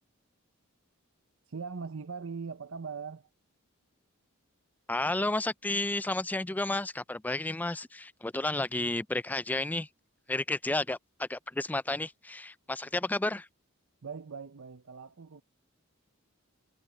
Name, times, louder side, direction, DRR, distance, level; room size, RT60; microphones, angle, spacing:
voice 1, 1.5-3.3 14.0-15.4, right 5 dB, 60° right, 0.6 m, -40 dB
voice 2, 4.9-9.9 10.3-13.5, left 2 dB, 5° left, 0.3 m, -32 dB
head